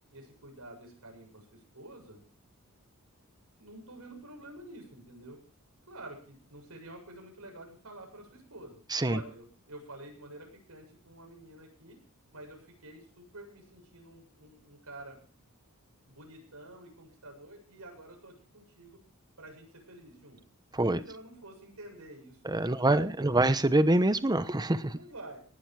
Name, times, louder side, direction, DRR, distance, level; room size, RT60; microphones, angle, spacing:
voice 1, 0.1-2.2 3.6-5.4 5.9-12.0 12.3-15.2 16.1-19.0 19.4-20.4 20.8-23.4 24.9-25.4, right 1 dB, 85° right, 2 dB, 7.6 m, -49 dB
voice 2, 22.5-25.0, right 2 dB, 20° right, 13 dB, 1.0 m, -25 dB
18.5 x 12.0 x 4.9 m, 0.38 s
head